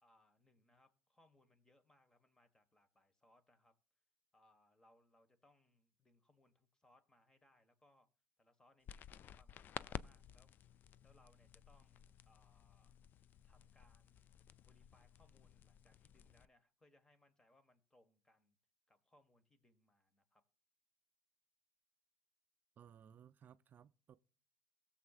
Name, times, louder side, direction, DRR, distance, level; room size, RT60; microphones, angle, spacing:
voice 1, 0.0-3.7 4.3-8.1 8.4-12.9 13.4-14.3 14.6-18.6 18.9-20.4, left 1 dB, 15° left, 1.5 m, -72 dB
sound 1, 8.9-16.5, left 9 dB, 50° left, 0.3 m, -54 dB
voice 2, 22.8-24.2, right 8 dB, 45° right, 0.4 m, -61 dB
17.5 x 7.2 x 2.4 m
cardioid pair, 105°, 4 cm